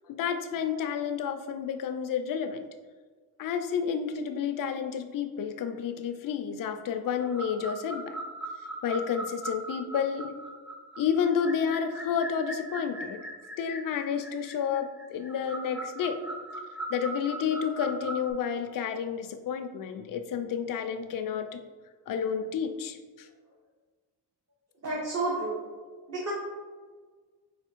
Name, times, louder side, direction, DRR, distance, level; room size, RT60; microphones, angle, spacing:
voice 1, 0.1-2.7 3.4-8.2 8.8-10.3 11.0-13.2 13.6-16.2 16.9-21.6 22.1-23.3, left 7 dB, 55° left, 7 dB, 0.5 m, -30 dB
sound 1, 7.2-18.3, right 1 dB, 5° right, 0.4 m, -40 dB
voice 2, 24.8-25.6 26.1-26.3, right 2 dB, 40° right, -5 dB, 1.0 m, -30 dB
4.2 x 2.6 x 4.5 m, 1.5 s
wide cardioid pair, 145°, 41 cm